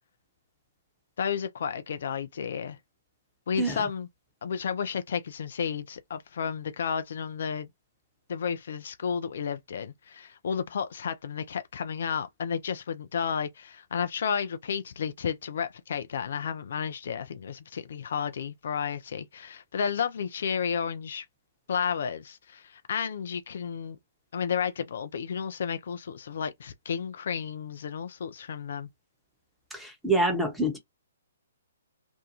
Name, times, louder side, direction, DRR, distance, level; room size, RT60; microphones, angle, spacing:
voice 1, 1.2-2.8 3.5-4.1 4.4-7.7 8.3-21.3 21.7-24.0 24.3-28.9, left 7 dB, 60° left, 0.4 m, -32 dB
voice 2, 3.6-3.9 29.7-30.8, right 1 dB, 5° right, 0.9 m, -26 dB
2.6 x 2.2 x 2.8 m
figure-of-eight pair, 125°, 0 cm